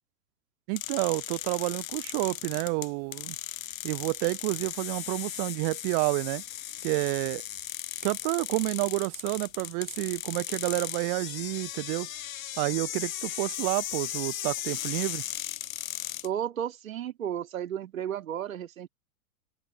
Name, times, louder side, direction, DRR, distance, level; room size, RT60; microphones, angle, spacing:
voice 1, 0.7-3.4 3.8-6.4 6.8-7.4 8.0-12.1 12.6-15.2, right 40 dB or more, 25° right, 0.7 m, -29 dB
sound 1, 0.8-16.3, left 12 dB, 60° left, 0.7 m, -37 dB
voice 2, 16.2-18.9, right 10 dB, 60° right, 2.6 m, -33 dB
open air
figure-of-eight pair, 100°, 46 cm